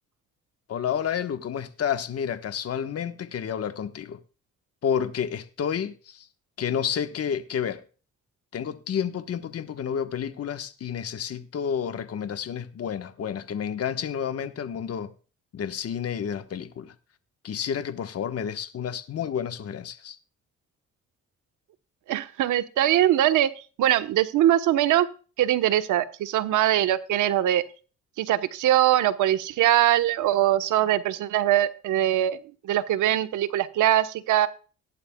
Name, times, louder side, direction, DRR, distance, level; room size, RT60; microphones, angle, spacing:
voice 1, 0.7-4.2 4.8-6.3 6.6-7.8 8.5-15.1 15.5-16.9 17.4-20.2, left 8 dB, 50° left, 1.3 m, -30 dB
voice 2, 22.1-23.5 23.8-25.1 25.4-27.6 28.2-34.5, right 12 dB, 85° right, 1.1 m, -22 dB
17.5 x 11.5 x 2.3 m
cardioid pair, 90°, 30 cm